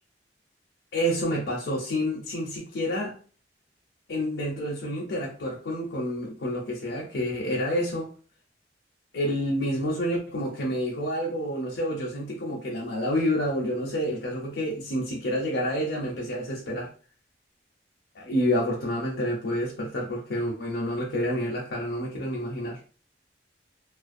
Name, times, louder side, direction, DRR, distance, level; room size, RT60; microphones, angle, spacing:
voice 1, 0.9-3.2 4.1-8.1 9.1-16.9 18.2-22.8, equal, 80° left, 0.6 m, -28 dB
2.4 x 2.1 x 2.5 m
head